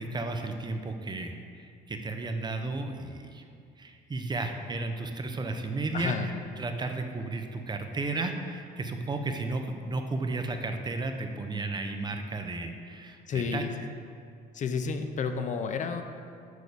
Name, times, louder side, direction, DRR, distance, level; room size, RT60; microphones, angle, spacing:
voice 1, 0.0-3.4 3.8-6.3 6.6-13.6, right 3 dB, 25° right, 5 dB, 0.8 m, -33 dB
voice 2, 5.9-6.3 13.3-13.7 14.5-16.0, left 5 dB, 45° left, 7 dB, 0.7 m, -31 dB
6.4 x 6.3 x 6.9 m, 2.3 s
cardioid pair, 110°, 17 cm